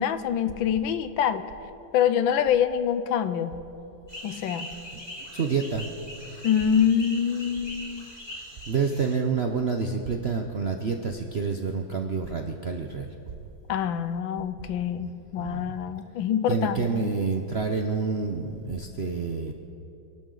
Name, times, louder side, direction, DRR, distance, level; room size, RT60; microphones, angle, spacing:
voice 1, 0.0-1.4 1.9-3.6 4.2-4.7 6.4-8.1 13.7-17.1, left 8 dB, 80° left, 11 dB, 1.5 m, -25 dB
sound 1, 4.1-9.1, left 1 dB, 20° left, 2.7 m, -41 dB
voice 2, 5.3-5.9 8.7-13.1 15.0-15.1 15.4-15.8 16.5-19.5, right 5 dB, 60° right, 4 dB, 0.6 m, -28 dB
27.0 x 12.0 x 3.9 m, 2.9 s
omnidirectional pair, 2.1 m